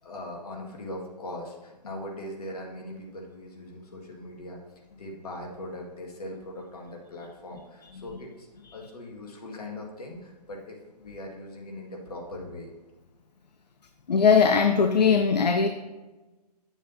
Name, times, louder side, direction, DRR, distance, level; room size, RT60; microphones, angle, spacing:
voice 1, 0.0-4.6 5.0-8.5 8.7-12.7, left 1 dB, 65° left, 0 dB, 1.9 m, -40 dB
voice 2, 14.1-15.7, left 6 dB, 80° left, 7 dB, 0.5 m, -20 dB
8.7 x 7.2 x 2.7 m, 1.2 s
figure-of-eight pair, 135°, 21 cm